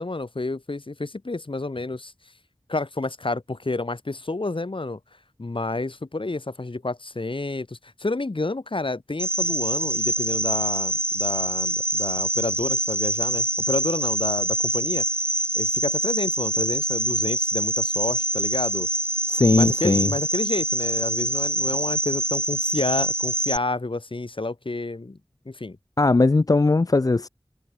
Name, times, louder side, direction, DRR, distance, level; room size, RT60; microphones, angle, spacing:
voice 1, 0.0-2.1 2.7-5.0 5.4-15.1 15.5-18.9 19.5-25.2 25.5-25.8, left 2 dB, 60° left, 2.7 m, -30 dB
Cricket, 9.2-23.6, right 1 dB, 25° right, 0.9 m, -25 dB
voice 2, 19.3-20.1 26.0-27.3, left 3 dB, 40° left, 0.4 m, -19 dB
open air
wide cardioid pair, 45°, 10 cm